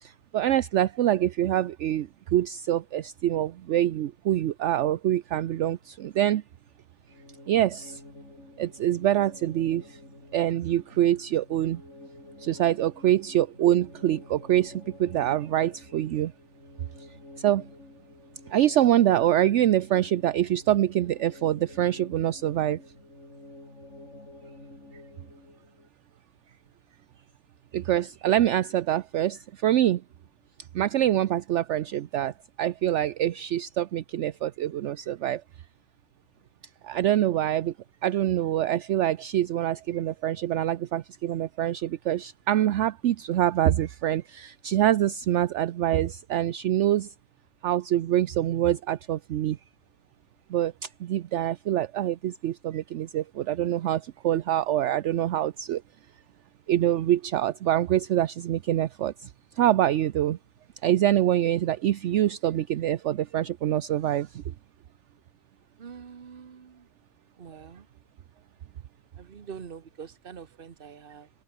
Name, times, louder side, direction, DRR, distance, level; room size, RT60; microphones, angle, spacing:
voice 1, 0.3-6.4 7.5-8.0 8.6-9.8 10.3-11.8 12.4-14.7 15.0-16.3 17.4-17.6 18.5-22.8 27.7-30.0 30.7-32.3 32.6-35.4 36.9-37.7 38.0-47.1 47.6-49.6 50.5-50.7 51.0-55.8 56.7-59.1 59.6-60.4 60.8-64.3, right 12 dB, 60° right, 0.8 m, -25 dB
sound 1, 7.1-25.9, left 2 dB, 50° left, 6.5 m, -49 dB
voice 2, 65.8-66.9 67.4-67.9 69.2-71.3, right 7 dB, 40° right, 1.2 m, -44 dB
omnidirectional pair, 1.6 m